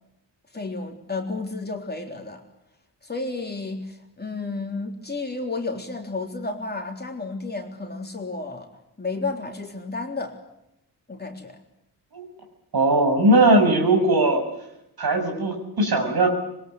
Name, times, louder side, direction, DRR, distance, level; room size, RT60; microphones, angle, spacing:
voice 1, 0.5-2.4 3.0-8.7 9.0-10.3 11.1-11.6, left 3 dB, 20° left, 2 dB, 3.6 m, -32 dB
voice 2, 12.7-14.4 15.0-16.3, right 2 dB, 60° right, 4 dB, 7.0 m, -19 dB
26.0 x 23.0 x 8.2 m, 0.84 s
wide cardioid pair, 180°, 43 cm